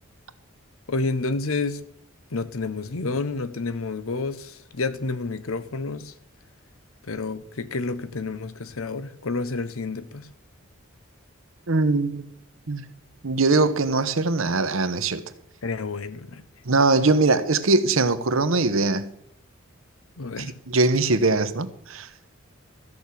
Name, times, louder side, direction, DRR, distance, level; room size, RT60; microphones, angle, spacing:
voice 1, 0.9-1.8 2.3-6.1 7.0-10.3 15.6-16.4 20.2-20.6, left 3 dB, 90° left, 0.9 m, -29 dB
voice 2, 11.7-12.2 12.7-12.9 13.2-15.2 16.7-19.1 20.4-22.1, right 3 dB, 80° right, 1.0 m, -21 dB
13.5 x 6.1 x 8.4 m
head